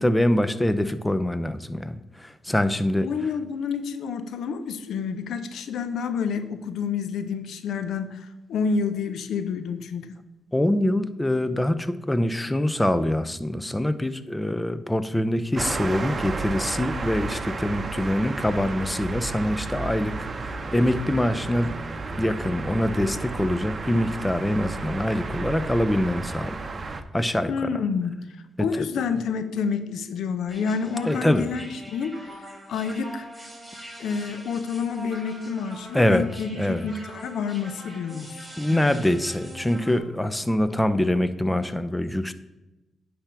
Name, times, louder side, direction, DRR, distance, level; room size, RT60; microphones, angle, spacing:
voice 1, 0.0-3.1 10.5-21.7 22.1-26.6 27.1-27.7 28.6-28.7 31.1-31.5 35.9-36.9 38.6-42.3, left 1 dB, 15° left, 12 dB, 0.6 m, -24 dB
voice 2, 3.0-10.2 27.5-28.2 28.6-33.3 34.0-38.4 38.7-39.0, left 5 dB, 75° left, 11 dB, 0.5 m, -29 dB
sound 1, 15.6-27.0, right 3 dB, 40° right, 0.7 m, -32 dB
sound 2, 30.5-40.0, right 1 dB, 15° right, 2.7 m, -43 dB
9.9 x 3.5 x 5.8 m, 1.0 s
hypercardioid pair, 45°, 0 cm